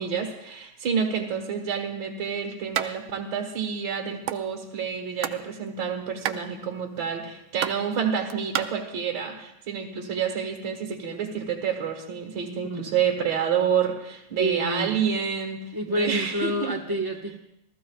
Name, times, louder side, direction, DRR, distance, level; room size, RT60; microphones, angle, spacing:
voice 1, 0.0-16.7, right 7 dB, 65° right, 1 dB, 2.2 m, -28 dB
Wood Hitting wood, 2.7-2.9 3.2-3.3 3.6-4.4 4.9-5.4 5.7-8.6, right 11 dB, 85° right, 1.5 m, -30 dB
voice 2, 12.6-13.0 14.4-15.0 15.7-17.4, right 1 dB, 15° right, 1 dB, 1.0 m, -28 dB
28.5 x 14.5 x 2.4 m, 0.85 s
omnidirectional pair, 2.2 m